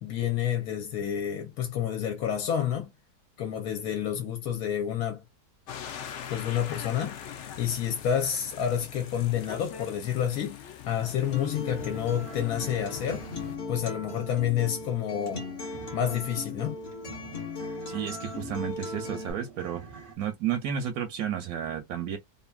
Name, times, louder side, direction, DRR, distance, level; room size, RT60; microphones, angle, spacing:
voice 1, 0.0-2.9 3.4-5.2 6.3-13.3 13.7-15.5 15.9-16.8, left 9 dB, 65° left, 1.0 m, -29 dB
sound 1, 5.7-13.6, left 9 dB, 85° left, 0.6 m, -42 dB
sound 2, 11.1-20.2, right 5 dB, 50° right, 0.6 m, -48 dB
Acoustic guitar, 11.3-19.3, left 3 dB, 40° left, 1.2 m, -38 dB
voice 2, 17.9-19.8 20.2-22.2, right 9 dB, 70° right, 0.9 m, -32 dB
2.7 x 2.5 x 2.3 m
omnidirectional pair, 1.8 m